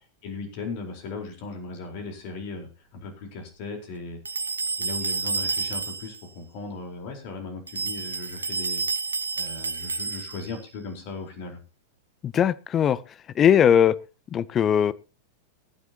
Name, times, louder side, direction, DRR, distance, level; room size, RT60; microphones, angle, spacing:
voice 1, 0.2-8.8 9.4-11.6, left 3 dB, 45° left, 4.4 m, -37 dB
sound 1, 4.2-6.2 7.7-10.6, right 4 dB, 80° right, 0.7 m, -30 dB
voice 2, 12.2-13.0 13.4-14.0 14.3-14.9, left 9 dB, 25° left, 0.7 m, -19 dB
23.5 x 9.4 x 2.9 m
figure-of-eight pair, 90°, 0 cm